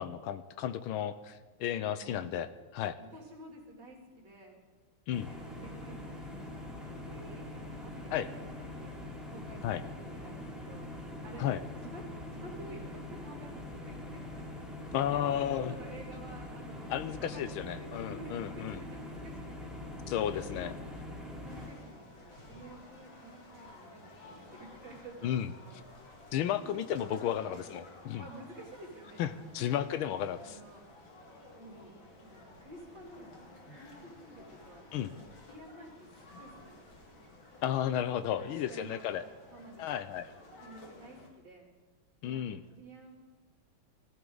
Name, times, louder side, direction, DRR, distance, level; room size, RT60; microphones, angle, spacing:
voice 1, 0.0-3.0 5.1-5.3 8.1-8.3 9.6-9.8 11.4-11.6 14.9-15.7 16.9-18.8 20.1-20.7 25.2-25.5 26.3-28.2 29.2-30.6 34.9-35.1 37.6-39.2 39.8-40.3 42.2-42.6, left 10 dB, 80° left, 13 dB, 1.4 m, -33 dB
voice 2, 2.0-2.3 3.0-4.6 5.2-9.0 9.3-9.6 10.0-10.9 11.2-11.5 11.8-12.1 12.3-14.4 15.5-19.7 20.3-21.0 21.3-25.8 26.3-27.7 28.2-29.9 30.4-30.8 31.5-31.9 32.2-35.1 35.4-37.0 38.4-40.0 40.6-41.7 42.2-43.2, right 1 dB, 55° right, -1 dB, 3.5 m, -51 dB
sound 1, 5.1-21.7, left 1 dB, ahead, 3.3 m, -43 dB
sound 2, 21.4-41.3, left 2 dB, 65° left, 2.9 m, -54 dB
19.5 x 14.5 x 4.0 m, 1.3 s
omnidirectional pair, 2.4 m